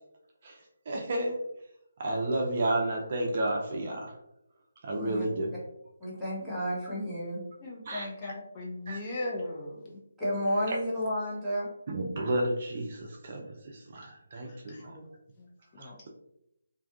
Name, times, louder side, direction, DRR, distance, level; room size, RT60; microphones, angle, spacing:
voice 1, 0.9-1.4 2.0-4.1 4.8-5.5 7.9-8.3 8.9-9.0 10.7-10.8 11.9-13.5 13.7-15.0 15.8-16.1, right 1 dB, 40° right, 0 dB, 0.4 m, -31 dB
voice 2, 4.9-5.3 6.0-7.4 10.2-11.7, equal, 5° right, -10 dB, 0.8 m, -31 dB
voice 3, 7.6-10.0 14.5-15.0 15.4-16.1, left 2 dB, 25° left, -2 dB, 0.4 m, -39 dB
2.5 x 2.3 x 2.3 m, 0.80 s
figure-of-eight pair, 150°, 0 cm